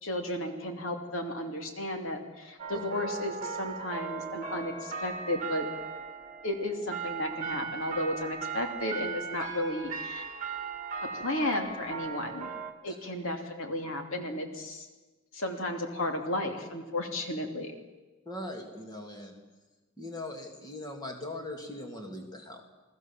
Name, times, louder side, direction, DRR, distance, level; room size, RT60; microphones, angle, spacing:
voice 1, 0.0-5.7 6.4-10.3 11.0-12.5 12.8-14.9 15.3-17.7, left 1 dB, 70° left, 4 dB, 2.9 m, -33 dB
sound 1, 2.6-12.7, right 5 dB, 35° right, 2.1 m, -38 dB
voice 2, 18.2-19.3 20.0-22.6, left 1 dB, 20° left, 2 dB, 2.8 m, -40 dB
28.5 x 19.5 x 7.5 m, 1.2 s
head